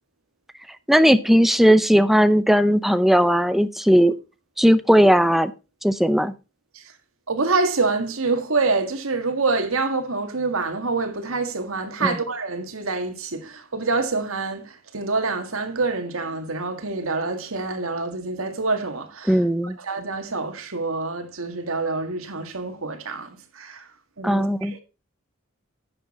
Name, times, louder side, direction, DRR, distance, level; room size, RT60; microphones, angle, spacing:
voice 1, 0.9-4.1 4.6-5.5 5.8-6.3 12.0-12.2 19.3-19.8 24.2-24.8, equal, ahead, 0.6 m, -17 dB
voice 2, 7.3-19.4 19.8-23.9 24.2-24.8, right 3 dB, 80° right, 1.8 m, -26 dB
10.5 x 7.0 x 4.2 m
head